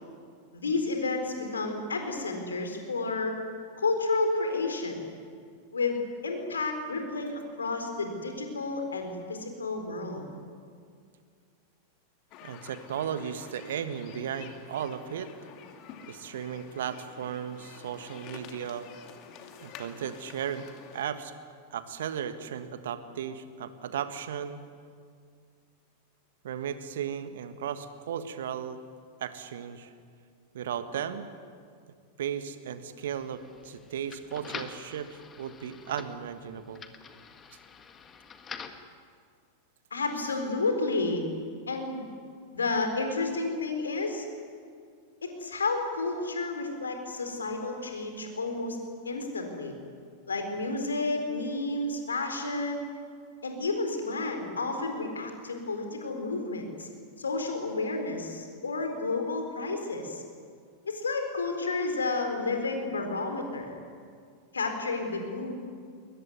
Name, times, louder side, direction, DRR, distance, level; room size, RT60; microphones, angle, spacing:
voice 1, 0.5-3.3 3.8-5.0 5.7-10.3 39.9-41.2 41.7-42.0 42.5-44.3 45.2-48.8 49.0-49.7 50.3-52.9 53.4-56.9 57.2-60.2 60.9-63.8 64.5-65.5, left 3 dB, 75° left, 5 dB, 4.2 m, -31 dB
sound 1, 12.3-21.1, left 7 dB, 40° left, 2.5 m, -49 dB
voice 2, 12.4-15.3 16.1-18.9 19.6-20.7 20.9-21.3 21.7-24.6 26.4-28.8 29.2-29.9 30.5-31.3 32.2-36.8, right 8 dB, 60° right, 11 dB, 1.6 m, -35 dB
sound 2, 33.0-38.9, left 6 dB, 20° left, 1.8 m, -46 dB
22.5 x 20.0 x 9.5 m, 2.2 s
figure-of-eight pair, 90°, 0 cm